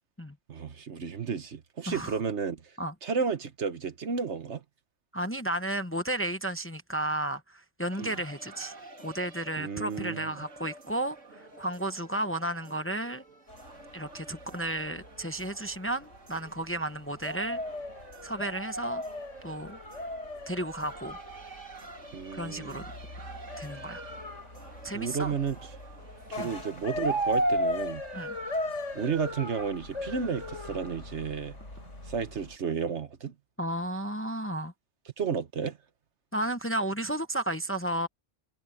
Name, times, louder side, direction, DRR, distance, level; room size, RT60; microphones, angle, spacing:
voice 1, 0.5-2.7 3.0-4.6 8.0-8.2 9.6-10.3 22.1-22.8 24.9-25.6 26.3-28.0 28.9-31.6 32.0-33.3 35.2-35.8, right 6 dB, 65° right, 1.4 m, -32 dB
voice 2, 1.9-2.2 2.8-2.9 5.1-8.7 9.0-13.2 13.9-17.6 18.2-19.0 19.4-19.8 20.5-21.2 22.3-22.8 23.6-24.0 24.8-25.3 26.4-26.5 28.1-28.3 33.6-34.7 36.3-38.1, right 1 dB, 10° left, 0.9 m, -33 dB
sound 1, 7.9-27.4, right 2 dB, 80° right, 3.1 m, -50 dB
sound 2, 13.5-32.6, equal, 75° left, 7.8 m, -36 dB
omnidirectional pair, 1.3 m